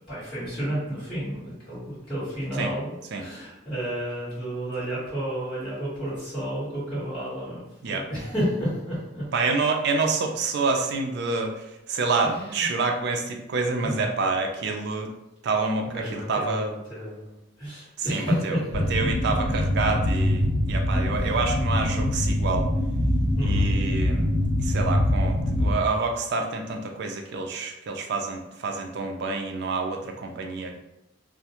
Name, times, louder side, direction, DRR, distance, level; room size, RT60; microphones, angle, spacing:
voice 1, 0.1-9.2 12.2-12.7 13.8-14.1 15.9-18.8 21.2-21.3 23.4-23.7, equal, 25° left, -12 dB, 1.3 m, -31 dB
voice 2, 9.3-15.1 15.4-16.7 18.1-18.6 18.9-22.7 23.4-24.3 24.6-30.8, right 3 dB, 50° right, 3 dB, 0.3 m, -27 dB
sound 1, 18.7-25.8, left 1 dB, 65° left, 0.8 m, -24 dB
2.3 x 2.2 x 2.8 m, 0.91 s
head